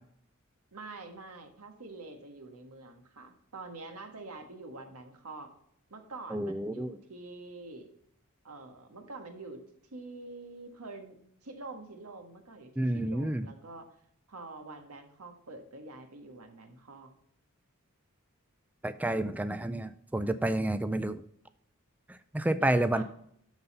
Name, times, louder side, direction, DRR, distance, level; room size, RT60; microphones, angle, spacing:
voice 1, 0.7-5.5 5.9-7.9 8.4-9.6 9.9-11.2 11.4-13.9 14.3-17.1 22.6-23.0, right 3 dB, 90° right, 5 dB, 1.6 m, -46 dB
voice 2, 6.3-6.9 12.8-13.5 18.8-21.2 22.1-23.0, right 1 dB, 5° right, 11 dB, 0.3 m, -30 dB
12.0 x 4.1 x 5.4 m, 0.71 s
head